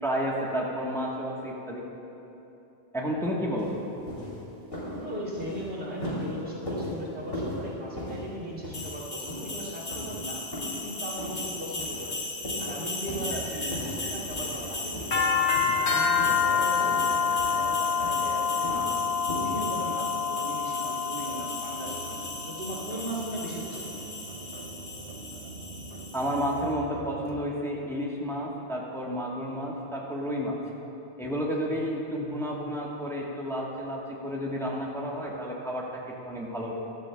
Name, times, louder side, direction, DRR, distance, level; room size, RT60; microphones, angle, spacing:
voice 1, 0.0-1.8 2.9-3.7 26.1-30.6 31.2-36.7, equal, 5° left, -3 dB, 1.1 m, -31 dB
sound 1, 3.6-3.7 4.1-4.3 4.7-5.0 5.3-5.6 6.0-6.3 6.7-6.9 7.3-7.6 8.0-8.2 8.6-9.0 9.3-9.5 9.9-10.1 10.5-10.8 11.2-11.4 11.8-12.1 12.4-12.7 13.1-13.3 13.7-14.0 14.3-14.6 14.9-15.2 15.5-15.8 16.2-16.5 16.8-17.1 17.4-17.6 18.0-18.3 18.6-18.9 19.3-19.5, left 1 dB, 60° left, 2.9 m, -36 dB
voice 2, 4.8-10.4 10.8-12.2 12.6-19.0 19.4-22.2 22.4-24.0, right 1 dB, 85° right, -6 dB, 2.7 m, -38 dB
sound 2, 8.7-26.5, left 5 dB, 90° left, 1.9 m, -30 dB
sound 3, 13.1-27.5, right 4 dB, 65° right, 0.9 m, -45 dB
15.5 x 12.5 x 2.2 m, 2.9 s
omnidirectional pair, 1.1 m